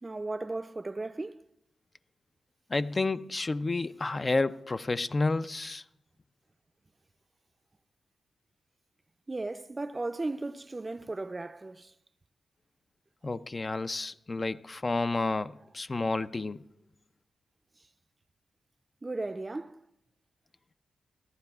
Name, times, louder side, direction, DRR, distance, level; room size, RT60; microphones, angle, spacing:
voice 1, 0.0-1.4 9.3-11.9 19.0-19.8, right 2 dB, 30° right, 0.5 m, -36 dB
voice 2, 2.7-5.8 13.2-16.6, left 3 dB, 35° left, 0.4 m, -30 dB
29.5 x 14.0 x 2.4 m
cardioid pair, 65°, 0 cm